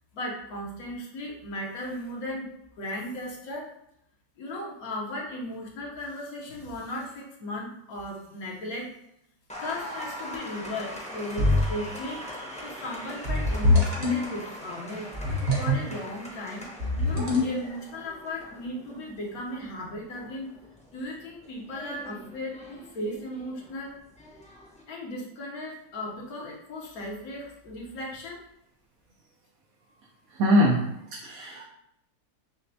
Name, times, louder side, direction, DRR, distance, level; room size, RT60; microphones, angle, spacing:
voice 1, 0.1-2.5 2.8-3.7 4.4-8.9 9.6-15.1 15.6-16.6 17.0-20.5 20.9-23.9 24.9-28.4, left 1 dB, 70° left, -2 dB, 1.3 m, -36 dB
Applause, 9.5-24.8, left 1 dB, 5° left, 0.6 m, -42 dB
sound 1, 11.4-11.9 13.2-14.2 15.1-15.8 16.8-17.7, left 2 dB, 45° right, 1.0 m, -24 dB
voice 2, 30.4-30.8 31.2-31.6, equal, 70° right, -3 dB, 1.0 m, -21 dB
6.3 x 2.1 x 2.7 m, 0.79 s
omnidirectional pair, 1.6 m